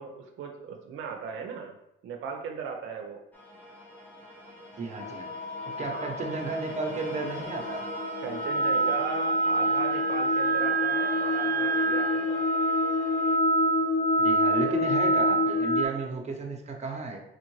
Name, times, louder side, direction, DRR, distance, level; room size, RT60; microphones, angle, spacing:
voice 1, 0.0-1.8 2.0-3.2 5.9-6.2 8.2-12.7 14.5-14.8, right 6 dB, 75° right, 2 dB, 0.5 m, -38 dB
sound 1, 3.3-13.4, equal, 10° left, 0.8 m, -44 dB
voice 2, 4.8-5.3 5.8-7.8 14.2-17.2, right 3 dB, 35° right, 2 dB, 0.8 m, -33 dB
sound 2, 5.0-15.9, equal, 45° left, 0.8 m, -26 dB
4.5 x 2.5 x 3.0 m, 0.88 s
cardioid pair, 90°, 20 cm